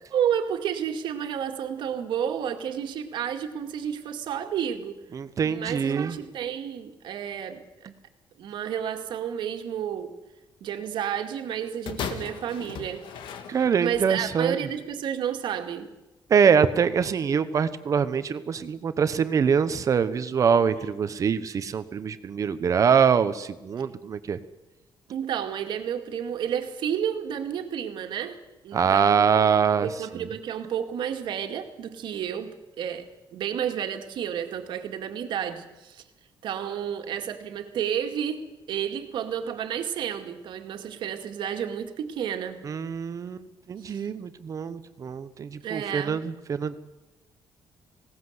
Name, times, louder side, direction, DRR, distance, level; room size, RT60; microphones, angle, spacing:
voice 1, 0.1-5.0 5.4-7.6 8.4-10.1 10.6-13.1 13.8-15.9 25.1-29.3 29.8-36.0 36.4-42.6 43.9-44.0 45.6-46.2, right 9 dB, 75° right, 6 dB, 2.1 m, -31 dB
voice 2, 5.1-6.2 13.5-14.7 16.3-24.4 28.7-29.9 30.1-30.3 42.6-46.8, right 6 dB, 40° right, 12 dB, 1.1 m, -24 dB
sound 1, 11.9-14.1 14.9-15.0, left 7 dB, 85° left, 1.8 m, -37 dB
19.5 x 18.0 x 8.1 m, 1.0 s
cardioid pair, 140°, 8 cm